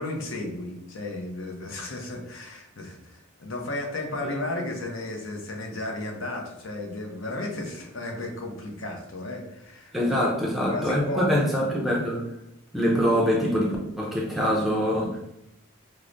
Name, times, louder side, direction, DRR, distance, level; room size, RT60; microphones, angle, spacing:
voice 1, 0.0-10.3 10.6-11.7, left 2 dB, 65° left, 1 dB, 0.6 m, -34 dB
voice 2, 9.9-12.2 12.7-15.2, equal, ahead, -3 dB, 0.5 m, -24 dB
4.6 x 2.1 x 2.5 m, 0.86 s
head